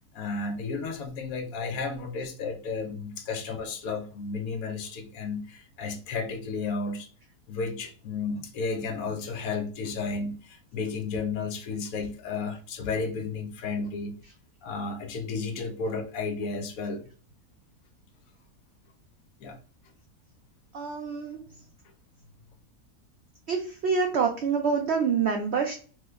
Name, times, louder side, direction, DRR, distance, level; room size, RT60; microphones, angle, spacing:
voice 1, 0.1-7.1 7.5-14.2 14.6-17.0 19.4-19.6, left 4 dB, 70° left, 0.9 m, -33 dB
voice 2, 20.7-21.4 23.5-25.7, right 5 dB, 80° right, 0.6 m, -26 dB
3.0 x 2.1 x 3.4 m
omnidirectional pair, 1.7 m